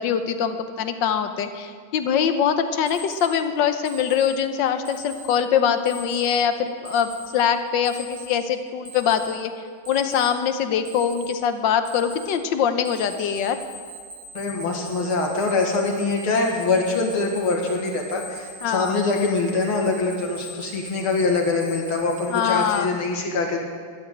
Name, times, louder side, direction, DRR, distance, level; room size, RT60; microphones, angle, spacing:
voice 1, 0.0-9.5 9.9-13.6 18.6-19.0 22.3-23.0, left 8 dB, 65° left, 9 dB, 1.5 m, -23 dB
Alarm, 2.9-3.2 3.9-4.2 4.9-5.2 5.9-6.2 6.9-7.2 7.9-8.2 8.9-9.2 9.9-10.2 10.9-11.2 11.9-12.2 12.9-22.7, right 2 dB, 70° right, 3.2 m, -41 dB
voice 2, 14.3-23.6, left 3 dB, 85° left, 1 dB, 2.8 m, -24 dB
13.0 x 9.0 x 8.9 m, 2.1 s
omnidirectional pair, 2.3 m